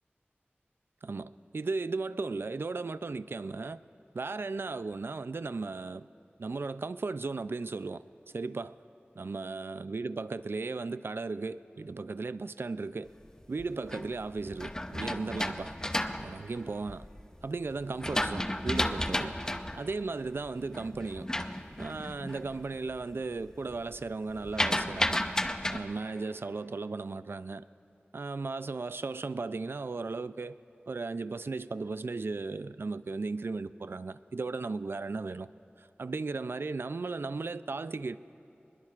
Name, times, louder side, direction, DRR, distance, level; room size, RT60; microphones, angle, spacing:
voice 1, 1.0-3.8 4.1-6.1 6.4-8.0 8.3-8.8 9.2-13.1 13.5-15.8 16.1-17.1 17.4-19.4 19.7-21.3 21.8-25.2 25.7-27.7 28.1-30.6 30.9-35.5 35.8-38.2, right 3 dB, 70° right, 0.3 m, -36 dB
sound 1, 13.4-17.2 17.7-22.5 22.9-23.3 23.6-25.8, left 1 dB, 15° left, 0.6 m, -33 dB
24.0 x 21.0 x 2.5 m
wide cardioid pair, 60°, 4 cm